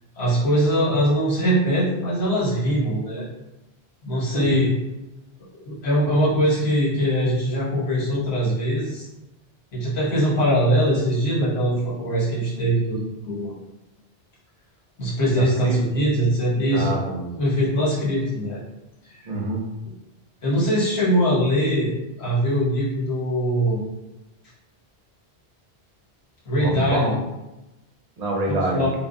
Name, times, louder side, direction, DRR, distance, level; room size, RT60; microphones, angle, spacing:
voice 1, 0.2-3.3 4.0-4.7 5.6-9.1 9.7-13.5 15.0-16.9 17.3-18.6 19.1-19.3 20.4-21.9 22.2-23.8 26.5-27.2 28.5-28.9, equal, 80° left, -6 dB, 1.2 m, -22 dB
voice 2, 15.3-15.8 16.7-17.4 19.3-19.7 26.6-27.2 28.2-28.9, right 2 dB, 50° right, -1 dB, 0.6 m, -26 dB
3.2 x 2.0 x 2.5 m, 0.99 s
omnidirectional pair, 1.1 m